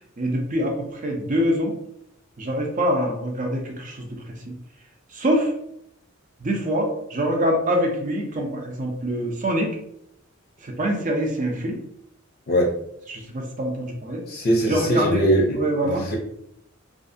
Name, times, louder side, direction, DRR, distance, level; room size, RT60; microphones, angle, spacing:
voice 1, 0.2-1.7 2.4-4.2 5.1-5.5 6.4-9.7 10.6-11.8 13.1-14.2 14.7-15.2 15.6-16.1, equal, 40° right, 1 dB, 0.6 m, -24 dB
voice 2, 14.3-16.2, right 1 dB, 45° left, -1 dB, 0.5 m, -22 dB
2.6 x 2.4 x 2.6 m, 0.75 s
head